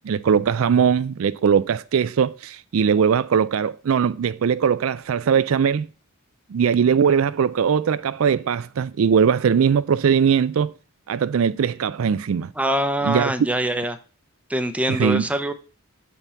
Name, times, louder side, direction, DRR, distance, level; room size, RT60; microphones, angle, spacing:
voice 1, 0.0-5.9 6.5-10.7 11.1-12.5 13.0-13.3 14.9-15.2, right 7 dB, 70° right, 0.4 m, -20 dB
voice 2, 12.6-14.0 14.5-15.5, right 1 dB, 5° right, 0.7 m, -23 dB
6.0 x 5.6 x 7.0 m
head